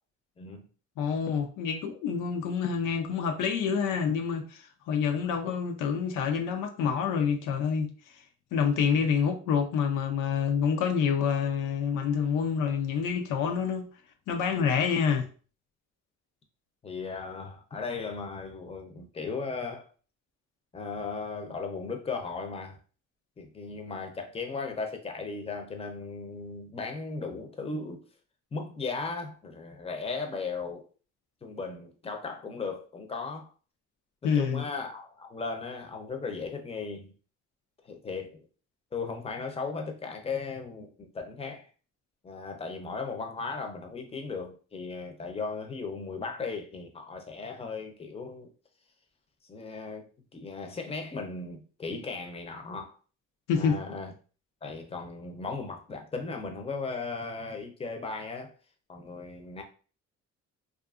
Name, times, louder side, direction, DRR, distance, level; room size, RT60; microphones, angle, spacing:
voice 1, 0.4-0.7 14.5-14.8 16.8-19.9 20.7-22.8 23.4-28.1 28.5-30.9 31.4-33.5 34.2-37.1 37.8-38.4 38.9-41.7 42.2-48.5 49.5-53.0 53.6-54.1 54.6-58.5 58.9-59.6, left 4 dB, 20° left, 0.5 m, -37 dB
voice 2, 1.0-7.9 8.5-13.9 14.3-15.3 34.2-34.6 53.5-53.8, left 6 dB, 90° left, 0.5 m, -27 dB
2.6 x 2.5 x 2.4 m
cardioid pair, 90°, 30 cm